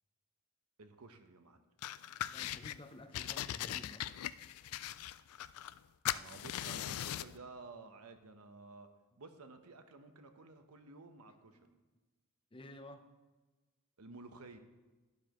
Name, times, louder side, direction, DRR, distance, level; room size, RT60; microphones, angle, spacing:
voice 1, 0.8-1.6 6.1-8.9 9.2-11.6 14.0-14.6, right 3 dB, 85° right, 7 dB, 1.0 m, -53 dB
sound 1, 1.8-2.8 3.1-5.8 6.0-7.4, left 12 dB, 80° left, 0.3 m, -40 dB
voice 2, 2.3-4.1 11.5-11.7 12.5-13.1, left 1 dB, 25° left, 7 dB, 0.6 m, -53 dB
12.0 x 11.5 x 3.0 m, 1.2 s
head